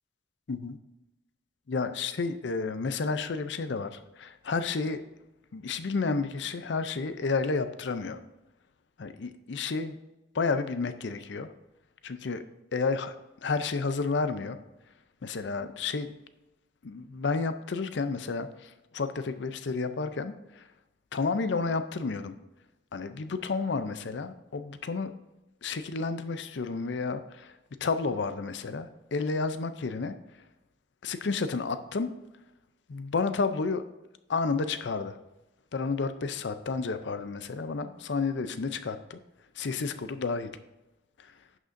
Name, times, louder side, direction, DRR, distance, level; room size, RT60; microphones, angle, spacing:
voice 1, 1.7-5.0 5.5-8.2 9.0-10.0 10.3-11.5 12.0-12.4 12.7-13.2 13.4-14.6 15.2-16.1 16.8-20.6 21.1-22.3 22.9-25.1 25.6-27.5 27.8-30.1 31.0-32.1 32.9-33.8 34.3-35.2 35.7-39.2 39.6-40.5 41.2-41.3, left 4 dB, 65° left, 11 dB, 0.5 m, -31 dB
11.0 x 6.4 x 2.6 m, 0.97 s
head